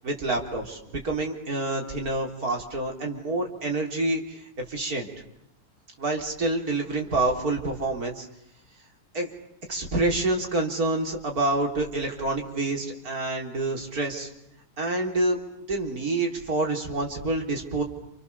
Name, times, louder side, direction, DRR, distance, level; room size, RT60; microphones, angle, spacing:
voice 1, 0.0-5.1 6.0-8.3 9.1-9.3 9.7-14.3 14.8-15.4 15.7-17.8, right 2 dB, 85° right, 1 dB, 4.3 m, -27 dB
29.5 x 28.5 x 7.1 m, 0.80 s
omnidirectional pair, 1.6 m